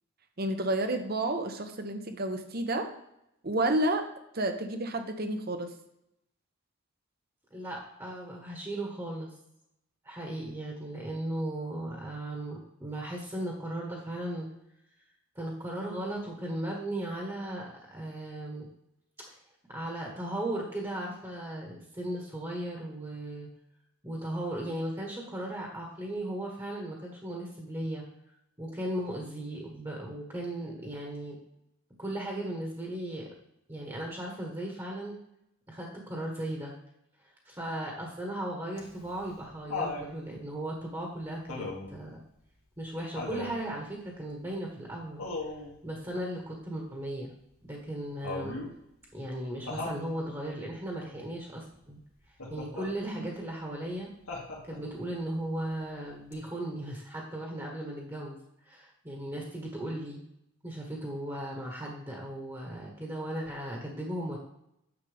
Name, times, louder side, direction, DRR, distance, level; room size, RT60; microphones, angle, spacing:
voice 1, 0.4-2.9 3.4-4.1 4.3-5.7 53.0-53.3, right 1 dB, 45° right, 8 dB, 0.9 m, -30 dB
voice 2, 7.5-9.3 10.0-14.5 15.3-18.7 19.3-19.4 19.7-23.5 24.0-28.0 28.6-31.4 32.0-33.2 33.7-35.1 35.7-36.7 37.4-42.2 42.8-45.2 45.8-47.3 47.7-48.6 49.1-52.0 52.5-54.1 54.7-58.4 58.6-60.2 60.6-64.4, right 1 dB, 15° right, 0 dB, 1.4 m, -36 dB
Laughter, 38.8-40.1 41.5-42.0 43.1-43.6 45.2-45.7 48.2-48.7 49.7-50.0 52.4-52.9 54.3-54.9 56.3-56.4, left 3 dB, 75° left, 2.1 m, -37 dB
9.8 x 7.3 x 3.5 m, 0.82 s
head